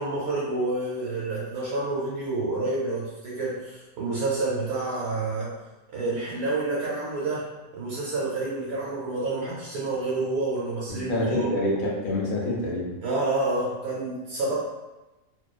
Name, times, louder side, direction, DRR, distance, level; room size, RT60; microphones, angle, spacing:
voice 1, 0.0-5.5 5.9-7.5 7.7-11.5 13.0-14.5, right 2 dB, 90° right, -7 dB, 1.2 m, -28 dB
voice 2, 10.9-13.0, left 1 dB, 60° left, -4 dB, 0.5 m, -27 dB
2.6 x 2.3 x 2.3 m, 1.1 s
omnidirectional pair, 1.5 m